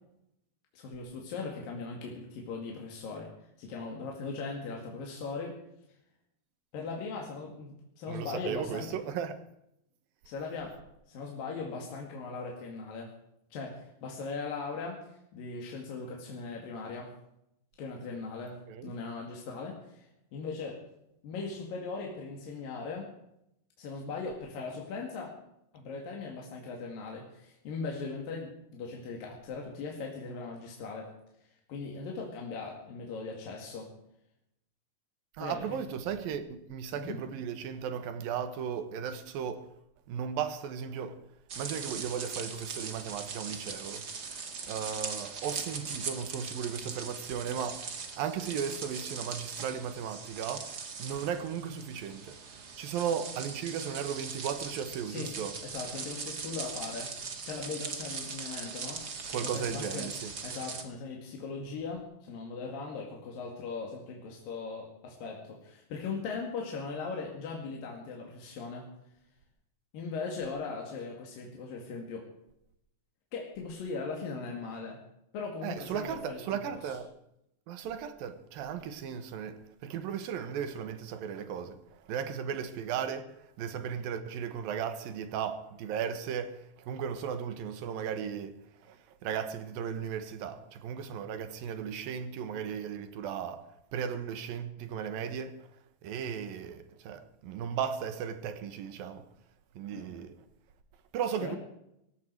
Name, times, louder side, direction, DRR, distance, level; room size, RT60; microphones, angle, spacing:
voice 1, 0.7-3.3 3.6-5.6 6.7-9.0 10.3-10.8 11.1-13.1 13.5-17.1 17.8-20.8 21.2-23.1 23.8-25.4 25.7-31.1 31.7-33.9 35.4-35.8 36.9-37.2 55.1-55.4 55.6-57.1 57.5-60.1 60.4-68.9 69.9-72.3 73.3-75.0 75.3-76.8 99.9-100.1 101.4-101.6, left 4 dB, 75° left, 3.9 m, -39 dB
voice 2, 8.1-9.4 18.7-18.9 35.4-39.7 40.1-41.2 41.6-44.1 44.6-50.7 51.0-52.4 52.8-55.5 59.3-60.3 75.6-77.1 77.7-88.6 88.8-93.6 93.9-95.7 96.0-99.3 99.8-100.4 101.1-101.6, right 8 dB, 80° right, 3.0 m, -36 dB
sound 1, 41.5-60.8, right 5 dB, 40° right, 1.6 m, -40 dB
18.5 x 15.5 x 4.7 m
omnidirectional pair, 4.1 m